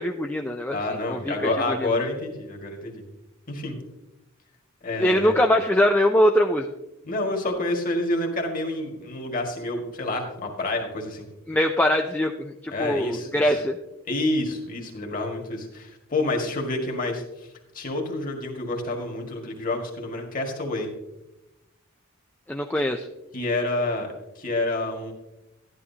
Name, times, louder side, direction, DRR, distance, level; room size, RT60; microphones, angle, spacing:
voice 1, 0.0-0.8 1.1-1.9 4.9-6.7 11.5-13.8 22.5-23.1, equal, 10° left, 2 dB, 0.4 m, -22 dB
voice 2, 0.7-3.0 3.5-3.8 4.8-5.4 7.0-11.3 12.7-13.5 14.1-17.2 17.7-20.9 23.3-25.1, left 2 dB, 40° left, 1 dB, 1.7 m, -28 dB
12.0 x 11.0 x 2.8 m, 0.95 s
head